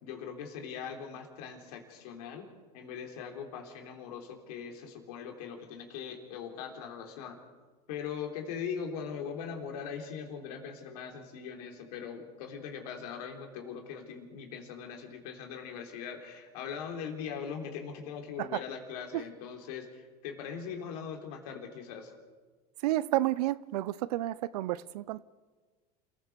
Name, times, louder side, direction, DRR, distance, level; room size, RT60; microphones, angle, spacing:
voice 1, 0.0-2.5 2.7-7.4 7.9-22.1, left 7 dB, 70° left, 3.6 m, -41 dB
voice 2, 22.8-25.2, right 15 dB, 75° right, 0.7 m, -31 dB
27.5 x 15.5 x 6.9 m
hypercardioid pair, 90°, 20 cm